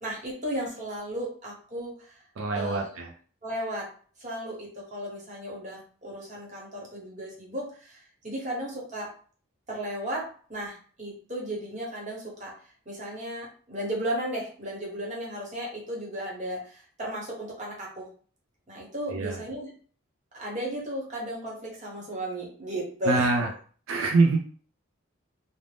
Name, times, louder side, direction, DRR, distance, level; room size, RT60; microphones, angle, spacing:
voice 1, 0.0-2.2 2.5-2.9 3.4-3.9 4.2-9.1 9.7-12.5 12.9-18.1 18.7-19.7 20.3-23.5, equal, 35° right, -4 dB, 1.0 m, -35 dB
voice 2, 2.4-3.1 19.1-19.4 23.1-23.5 23.9-24.4, right 3 dB, 80° right, 1 dB, 0.4 m, -24 dB
2.5 x 2.1 x 3.3 m, 0.43 s
head